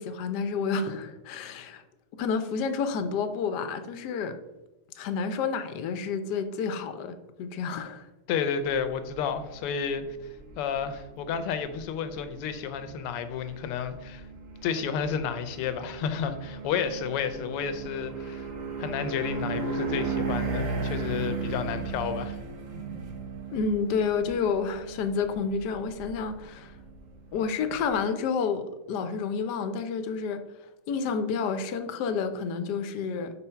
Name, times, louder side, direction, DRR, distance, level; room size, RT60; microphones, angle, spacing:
voice 1, 0.0-1.8 2.2-4.4 4.9-8.0 23.5-26.7 27.3-30.4 30.9-33.3, left 5 dB, 65° left, 8 dB, 1.0 m, -30 dB
voice 2, 8.3-10.0 10.6-14.2 14.6-18.5 18.8-22.4, left 7 dB, 85° left, 10 dB, 1.6 m, -31 dB
sound 1, 8.6-28.0, right 4 dB, 45° right, 1.1 m, -36 dB
5.6 x 4.6 x 5.6 m, 1.0 s
omnidirectional pair, 2.4 m